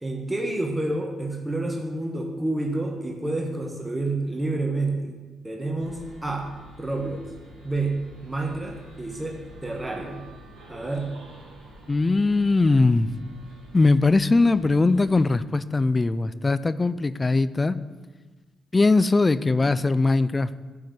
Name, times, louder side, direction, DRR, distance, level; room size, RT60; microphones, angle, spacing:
voice 1, 0.0-5.2 5.4-6.5 6.8-7.3 7.6-10.3 10.7-11.1, right 2 dB, 15° right, 1 dB, 1.6 m, -29 dB
sound 1, 5.8-15.4, equal, 70° right, 3.0 m, -48 dB
voice 2, 11.9-13.1 13.7-17.8 18.7-20.5, left 3 dB, 30° left, 15 dB, 0.5 m, -20 dB
11.0 x 4.7 x 8.0 m, 1.3 s
supercardioid pair, 50°, 0 cm